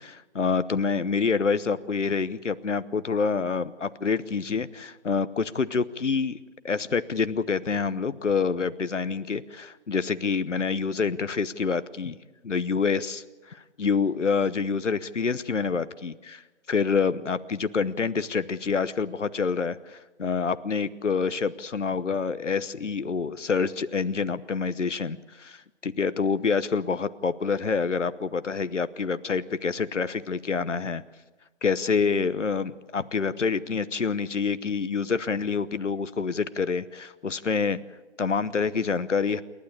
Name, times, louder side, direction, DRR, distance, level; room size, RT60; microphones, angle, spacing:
voice 1, 0.0-6.4 6.6-12.2 12.4-16.4 16.7-31.0 31.6-37.8 38.2-39.4, left 5 dB, 90° left, 15 dB, 1.0 m, -27 dB
28.5 x 12.5 x 8.7 m, 1.2 s
figure-of-eight pair, 160°, 35 cm